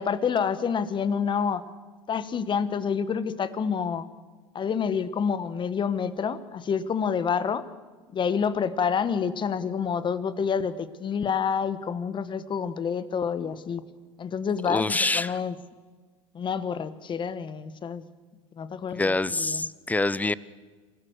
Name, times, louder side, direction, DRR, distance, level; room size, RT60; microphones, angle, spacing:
voice 1, 0.0-1.6 2.1-4.1 4.5-7.6 8.1-13.8 14.2-15.5 16.3-18.0 18.6-19.6, left 6 dB, 30° left, 14 dB, 1.4 m, -28 dB
voice 2, 14.7-15.4 18.9-20.3, left 2 dB, 10° left, 19 dB, 0.7 m, -26 dB
26.5 x 17.0 x 6.6 m, 1.4 s
hypercardioid pair, 90°, 15 cm